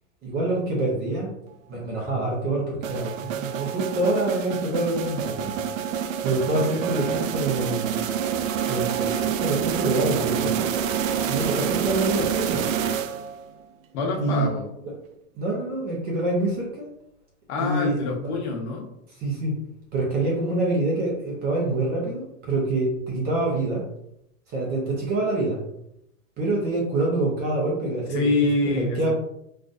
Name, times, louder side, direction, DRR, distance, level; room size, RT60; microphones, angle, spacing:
voice 1, 0.2-1.3 1.7-5.6 6.2-7.8 8.7-8.9 9.3-10.7 11.3-12.7 14.2-14.5 15.3-16.9 17.6-18.0 19.2-19.6 19.9-23.9 24.5-25.6 26.4-28.3 28.7-29.1, right 2 dB, 25° right, -2 dB, 0.6 m, -26 dB
sound 1, 2.8-13.5, right 8 dB, 70° right, 0.5 m, -27 dB
voice 2, 13.9-14.7 17.5-18.9 28.1-29.1, left 3 dB, 55° left, 0 dB, 1.0 m, -25 dB
3.8 x 2.4 x 2.5 m, 0.79 s
supercardioid pair, 150°, 41 cm